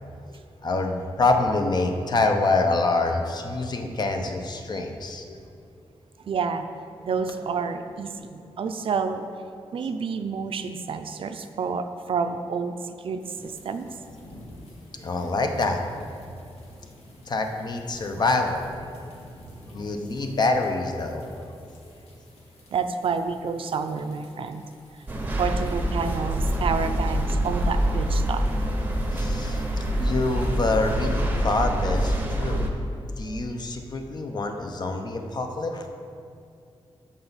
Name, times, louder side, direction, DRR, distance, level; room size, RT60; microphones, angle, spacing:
voice 1, 0.6-5.3 9.7-9.8 14.4-14.5 15.0-15.8 17.3-19.1 19.7-21.4 21.8-21.9 29.1-32.7 33.2-35.9, left 3 dB, 45° left, 4 dB, 0.7 m, -26 dB
voice 2, 3.8-4.3 6.2-6.7 7.0-9.3 9.7-13.9 22.7-24.6 25.4-28.4 33.3-33.4, right 5 dB, 60° right, 8 dB, 0.4 m, -29 dB
sound 1, 13.2-30.9, equal, 85° left, 1.5 m, -49 dB
sound 2, 25.1-32.7, right 1 dB, 20° right, 0.7 m, -25 dB
12.5 x 4.4 x 4.0 m, 2.5 s
wide cardioid pair, 160°, 10 cm